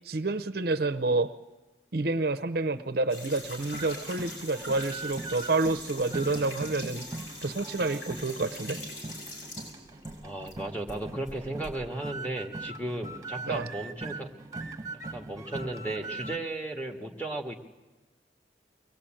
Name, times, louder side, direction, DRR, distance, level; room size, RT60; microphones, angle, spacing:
voice 1, 0.1-1.3 1.9-7.1 7.4-8.8 13.5-13.7, right 3 dB, 55° right, 11 dB, 0.7 m, -28 dB
sound 1, 3.1-10.6 10.9-11.7, left 1 dB, 85° left, 7.3 m, -43 dB
sound 2, 3.4-16.4, right 2 dB, 20° right, 1.3 m, -41 dB
voice 2, 10.2-14.3 15.1-17.5, right 2 dB, 10° left, 1 dB, 1.8 m, -35 dB
23.0 x 18.5 x 8.9 m, 1.1 s
head